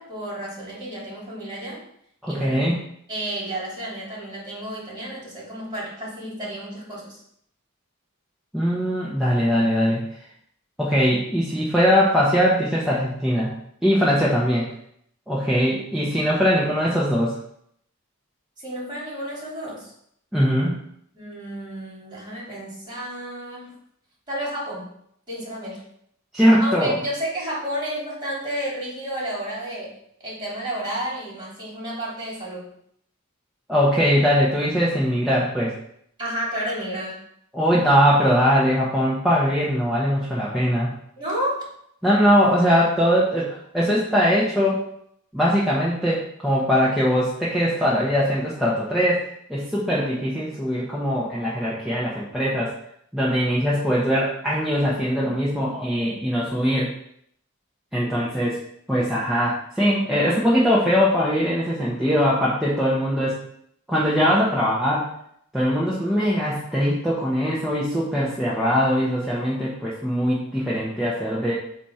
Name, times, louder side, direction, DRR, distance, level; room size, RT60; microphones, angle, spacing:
voice 1, 0.0-1.8 2.3-2.7 3.1-7.2 18.6-19.9 21.1-23.7 24.3-24.9 25.3-25.8 26.6-30.0 30.2-32.7 36.2-37.2 41.2-41.7, right 1 dB, 20° right, -6 dB, 3.1 m, -31 dB
voice 2, 2.2-2.8 8.5-10.0 10.8-13.5 13.8-14.7 15.3-17.3 20.3-20.8 26.3-26.9 33.7-35.7 37.5-40.9 42.0-44.8 45.3-49.2 49.5-52.7 53.1-56.9 57.9-58.6 58.9-63.4 63.9-65.1 65.5-71.5, equal, ahead, -7 dB, 1.1 m, -21 dB
8.2 x 2.9 x 5.7 m, 0.70 s
head